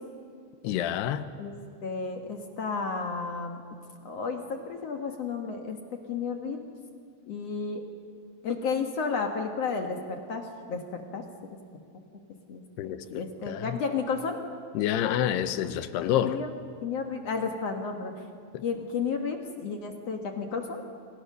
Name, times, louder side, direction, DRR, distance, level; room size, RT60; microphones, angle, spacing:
voice 1, 0.6-1.3 12.8-13.8 14.7-16.4 18.5-18.6, left 11 dB, 90° left, 12 dB, 2.9 m, -28 dB
voice 2, 1.8-3.6 4.0-5.8 6.1-6.6 7.3-7.8 8.4-11.2 12.5-12.6 13.1-14.4 16.2-16.5 16.8-18.2 18.6-20.8, left 5 dB, 55° left, 4 dB, 1.9 m, -32 dB
28.5 x 23.5 x 6.6 m, 2.3 s
omnidirectional pair, 4.7 m